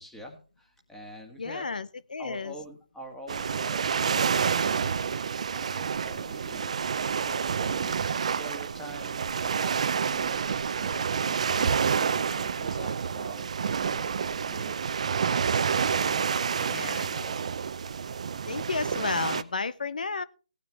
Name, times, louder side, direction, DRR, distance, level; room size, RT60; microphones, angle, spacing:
voice 1, 0.0-1.7 2.2-6.7 7.2-8.0 8.4-13.5 13.8-14.9 15.3-17.3, equal, 5° left, 1 dB, 1.8 m, -46 dB
voice 2, 1.4-2.5 16.7-17.1 18.5-20.2, left 4 dB, 70° left, 17 dB, 0.7 m, -32 dB
sound 1, 3.3-19.4, right 6 dB, 50° right, 0.6 m, -28 dB
17.5 x 9.5 x 3.4 m, 0.36 s
figure-of-eight pair, 155°, 5 cm